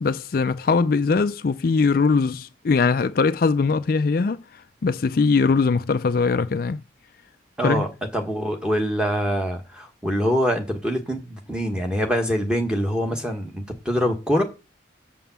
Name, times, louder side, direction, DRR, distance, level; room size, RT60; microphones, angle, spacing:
voice 1, 0.0-6.8 7.6-7.9, left 4 dB, 50° left, 0.4 m, -21 dB
voice 2, 7.6-14.4, equal, 5° right, 1.5 m, -24 dB
7.0 x 5.4 x 7.2 m
head